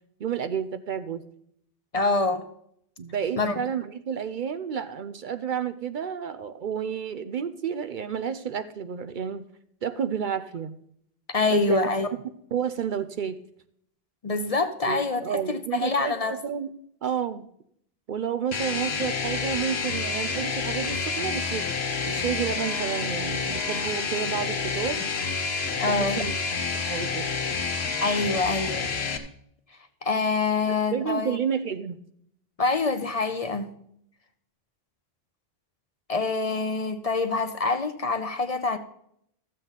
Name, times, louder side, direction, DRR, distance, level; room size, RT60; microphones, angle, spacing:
voice 1, 0.2-1.2 3.0-9.5 9.8-10.7 11.5-11.8 12.1-12.2 12.5-13.4 14.9-16.7 17.0-17.5 18.1-21.7 22.0-25.0 25.8-26.3 26.7-27.3 30.7-32.0, right 7 dB, 60° right, 11 dB, 0.7 m, -30 dB
voice 2, 1.9-2.4 3.4-3.5 11.3-12.1 14.2-16.3 25.8-26.2 28.0-28.9 30.0-31.4 32.6-33.7 36.1-38.8, left 3 dB, 40° left, 9 dB, 0.7 m, -25 dB
sound 1, 18.5-29.2, left 5 dB, 90° left, 1.2 m, -29 dB
13.5 x 7.6 x 4.0 m, 0.70 s
omnidirectional pair, 1.0 m